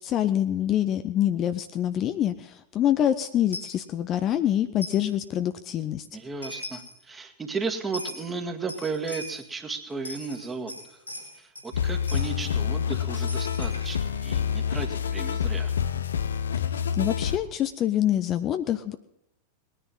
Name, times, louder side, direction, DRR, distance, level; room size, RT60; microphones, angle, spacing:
voice 1, 0.0-6.1 17.0-19.0, left 11 dB, 30° left, 10 dB, 0.8 m, -25 dB
Coin (dropping), 3.5-3.8 4.8-5.1 6.2-6.3 6.4-7.0 7.9-8.2 8.7-9.4 9.9-11.7 12.1-12.3 13.3-15.9, left 1 dB, 90° left, 4.7 m, -40 dB
voice 2, 6.1-11.0 11.3-15.7, right 4 dB, 15° right, 5 dB, 2.0 m, -34 dB
sound 1, 11.7-17.4, left 8 dB, 65° left, 0.8 m, -27 dB
20.0 x 10.0 x 5.5 m, 0.81 s
figure-of-eight pair, 90°, 0 cm